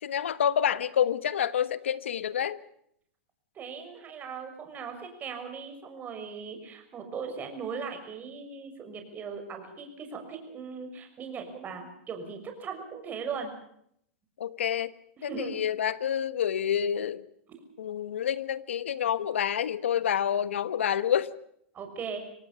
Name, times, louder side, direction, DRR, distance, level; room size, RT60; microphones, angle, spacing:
voice 1, 0.0-2.6 14.4-14.9 15.2-17.3 17.8-21.3, left 9 dB, 90° left, 16 dB, 1.3 m, -28 dB
voice 2, 3.5-13.5 15.2-15.5 21.7-22.2, right 6 dB, 25° right, 6 dB, 6.3 m, -38 dB
25.5 x 18.5 x 7.0 m, 0.71 s
hypercardioid pair, 125°, 6 cm